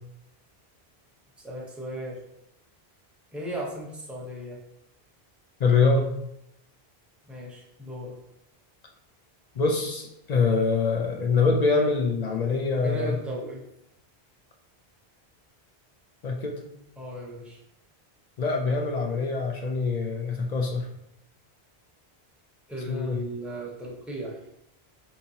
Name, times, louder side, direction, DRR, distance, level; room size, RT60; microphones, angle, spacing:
voice 1, 1.4-2.2 3.3-4.6 7.3-8.2 12.8-13.6 17.0-17.6 22.7-24.4, equal, ahead, -3 dB, 0.7 m, -36 dB
voice 2, 5.6-6.1 9.6-13.2 16.2-16.6 18.4-20.9 22.9-23.2, left 4 dB, 55° left, 2 dB, 0.5 m, -24 dB
4.5 x 2.9 x 2.7 m, 0.80 s
omnidirectional pair, 1.1 m